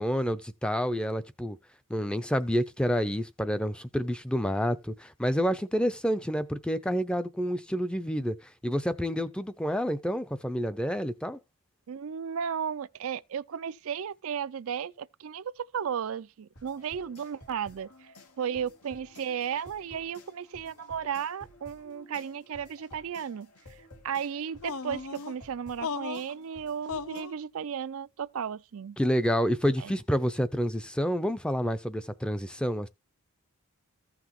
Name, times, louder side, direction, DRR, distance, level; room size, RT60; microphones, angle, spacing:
voice 1, 0.0-1.6 1.9-8.4 8.6-11.4 29.0-32.9, equal, 5° left, 0.5 m, -28 dB
voice 2, 11.9-18.1 18.4-23.5 24.0-29.0 29.8-29.9, right 7 dB, 65° right, 0.4 m, -34 dB
sound 1, 16.5-27.2, left 1 dB, 85° left, 2.4 m, -53 dB
sound 2, 24.6-25.3 25.8-26.3 26.9-27.3, left 5 dB, 70° left, 0.6 m, -36 dB
14.5 x 6.0 x 3.1 m
head